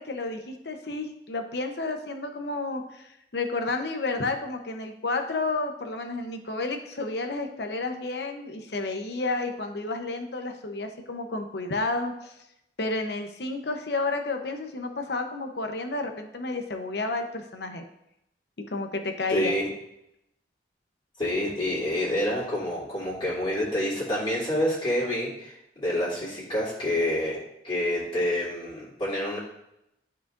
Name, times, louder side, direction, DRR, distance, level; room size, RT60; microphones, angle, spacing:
voice 1, 0.0-12.3 12.8-17.8 18.7-19.5, left 3 dB, 65° left, 5 dB, 0.9 m, -31 dB
voice 2, 19.3-19.7 21.2-27.4 27.6-29.4, left 1 dB, 30° left, -9 dB, 2.7 m, -28 dB
12.0 x 4.9 x 2.6 m, 0.82 s
head